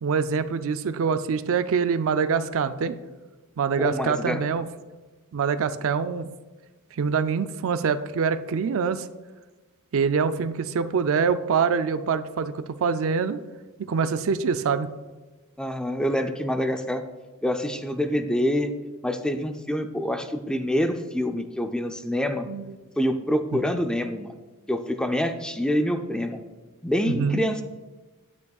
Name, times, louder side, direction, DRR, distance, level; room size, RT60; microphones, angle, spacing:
voice 1, 0.0-3.0 3.6-4.6 5.3-6.3 6.9-9.1 9.9-13.4 13.8-14.9 22.5-22.8 23.5-23.6 27.1-27.4, right 6 dB, 65° right, 11 dB, 0.4 m, -25 dB
voice 2, 3.8-4.4 15.6-17.0 17.4-18.7 19.0-22.5 23.0-24.3 24.7-26.4 26.8-27.6, equal, 5° left, 6 dB, 0.4 m, -26 dB
9.6 x 9.4 x 2.3 m, 1.2 s
head